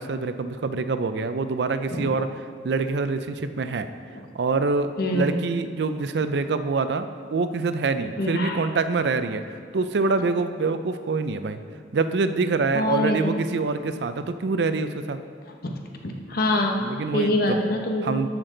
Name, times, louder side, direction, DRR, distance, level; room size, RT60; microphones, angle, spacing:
voice 1, 0.0-2.3 2.6-3.9 4.3-9.4 9.7-11.6 11.9-15.2 16.8-17.6 18.0-18.3, right 4 dB, 65° right, 10 dB, 0.4 m, -25 dB
voice 2, 5.0-5.4 8.2-8.6 12.7-13.3 15.6-15.8 16.0-16.8 17.1-18.2, left 1 dB, 55° left, 2 dB, 1.0 m, -25 dB
13.0 x 6.0 x 3.8 m, 2.1 s
head